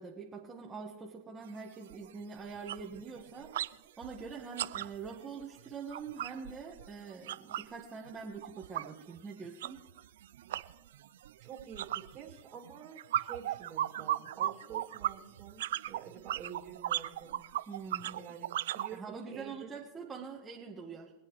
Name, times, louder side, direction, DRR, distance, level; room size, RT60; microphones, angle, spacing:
voice 1, 0.0-3.5 4.0-9.8 17.7-18.2 18.9-21.1, right 5 dB, 20° right, -2 dB, 1.6 m, -44 dB
sound 1, 1.4-1.5 1.9-2.1 2.4-3.7 4.0-7.8 8.1-18.9, right 12 dB, 80° right, 0.4 m, -37 dB
voice 2, 11.4-17.4 18.1-19.8, right 8 dB, 40° right, -2 dB, 2.4 m, -48 dB
23.5 x 8.6 x 3.2 m, 1.3 s
hypercardioid pair, 115°, 0 cm